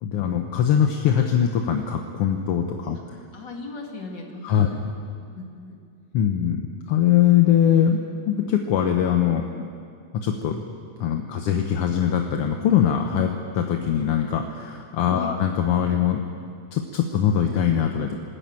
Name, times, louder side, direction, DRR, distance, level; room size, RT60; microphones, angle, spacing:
voice 1, 0.0-3.2 4.4-4.7 6.1-6.6 6.9-8.0 8.2-9.7 10.1-10.6 11.0-16.2 16.7-18.2, left 9 dB, 60° left, 3 dB, 1.7 m, -22 dB
voice 2, 3.3-5.8 15.1-15.4, left 3 dB, 40° left, 0 dB, 2.9 m, -38 dB
23.0 x 14.0 x 9.0 m, 2.3 s
omnidirectional pair, 3.4 m